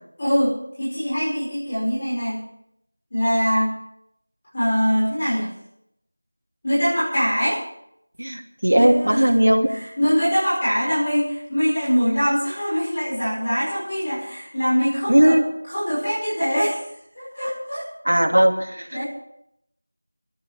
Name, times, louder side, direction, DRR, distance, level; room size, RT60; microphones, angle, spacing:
voice 1, 0.2-2.4 3.1-3.7 4.5-5.5 6.6-7.6 8.7-9.3 10.0-15.4 15.6-16.8 17.2-17.8 18.9-19.1, equal, 20° left, -9 dB, 5.3 m, -23 dB
voice 2, 8.2-9.7 15.1-15.4 18.0-19.0, right 1 dB, 85° right, 4 dB, 2.7 m, -17 dB
28.5 x 13.5 x 3.4 m, 0.74 s
figure-of-eight pair, 180°, 0 cm